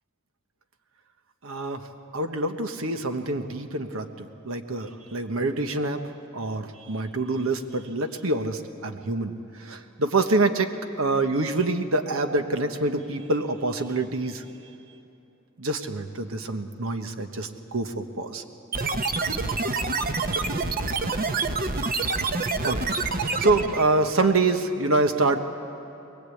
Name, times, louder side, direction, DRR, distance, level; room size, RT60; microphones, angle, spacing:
voice 1, 1.4-1.9 2.1-6.0 6.3-9.3 9.6-10.7 11.0-14.4 15.6-18.4 22.6-22.9 23.4-25.4, right 2 dB, 90° right, 7 dB, 1.2 m, -26 dB
sound 1, 18.7-23.9, right 3 dB, 45° right, 0.9 m, -27 dB
22.5 x 21.0 x 8.5 m, 3.0 s
head